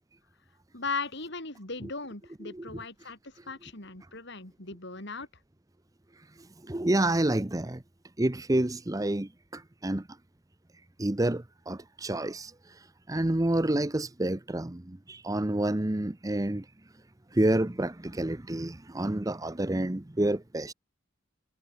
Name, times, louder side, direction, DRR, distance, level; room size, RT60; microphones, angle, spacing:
voice 1, 0.7-5.3, left 4 dB, 55° left, 5.0 m, -38 dB
voice 2, 6.6-7.8 8.2-10.1 11.0-16.7 17.3-20.7, right 1 dB, 15° right, 0.7 m, -29 dB
head